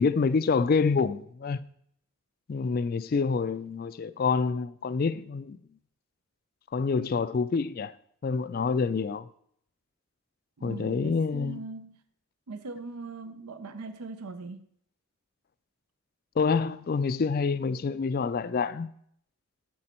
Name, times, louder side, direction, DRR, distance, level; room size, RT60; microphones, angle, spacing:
voice 1, 0.0-1.6 2.5-5.6 6.7-7.9 8.2-9.3 10.6-11.6 16.4-18.9, left 5 dB, 40° left, 0.3 m, -27 dB
voice 2, 10.6-12.0 12.5-14.6, right 3 dB, 85° right, 0.6 m, -40 dB
11.0 x 6.1 x 4.4 m
head